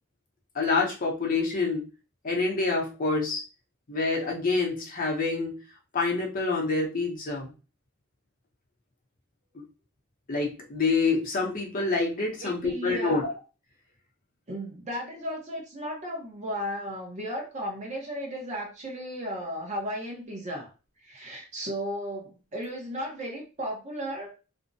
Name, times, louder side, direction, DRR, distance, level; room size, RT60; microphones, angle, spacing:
voice 1, 0.5-1.8 2.2-3.4 3.9-5.6 5.9-7.5 9.5-9.6 10.3-13.3, left 3 dB, 45° left, -2 dB, 0.7 m, -27 dB
voice 2, 12.4-13.3 14.5-20.7 21.0-24.3, equal, 35° right, 0 dB, 0.7 m, -35 dB
2.5 x 2.1 x 2.5 m, 0.33 s
head